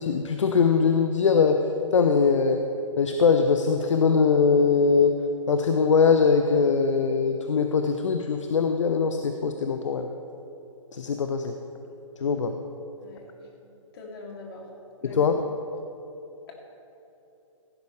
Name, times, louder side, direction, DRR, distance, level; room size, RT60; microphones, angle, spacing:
voice 1, 0.0-1.7 1.9-2.6 3.0-5.1 5.5-10.1 10.9-11.5 12.2-12.5 15.0-15.4, left 5 dB, 65° left, 6 dB, 0.7 m, -22 dB
voice 2, 13.6-14.7 15.0-15.2, left 3 dB, 45° left, -1 dB, 2.6 m, -43 dB
16.0 x 10.5 x 3.2 m, 2.9 s
figure-of-eight pair, 130°, 17 cm